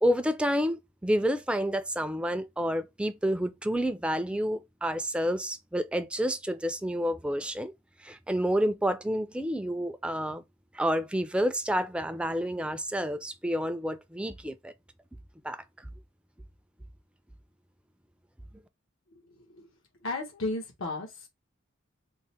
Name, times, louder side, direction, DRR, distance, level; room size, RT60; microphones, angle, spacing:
voice 1, 0.0-7.7 8.0-10.4 10.7-14.7 15.4-15.6, equal, 5° right, 0.3 m, -29 dB
voice 2, 20.0-21.3, left 2 dB, 90° left, 1.1 m, -33 dB
3.7 x 2.1 x 4.1 m
head